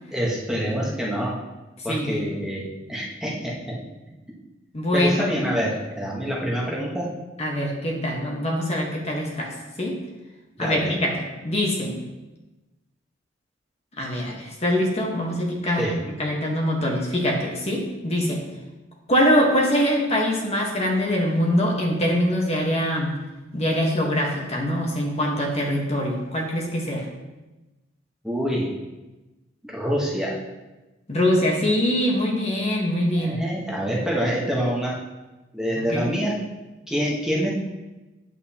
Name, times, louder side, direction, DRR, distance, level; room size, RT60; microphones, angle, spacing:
voice 1, 0.1-1.4 1.8-3.8 4.9-7.1 10.6-10.9 15.8-16.0 28.2-28.7 29.6-30.4 33.2-35.0 35.5-36.5 36.9-37.5, equal, 5° right, -5 dB, 1.2 m, -26 dB
voice 2, 1.9-2.3 4.7-5.2 7.4-10.0 10.6-12.0 14.0-18.4 19.1-23.2 23.5-27.1 31.1-33.4 35.9-36.1, equal, 35° left, -1 dB, 1.3 m, -23 dB
8.7 x 7.6 x 2.9 m, 1.1 s
head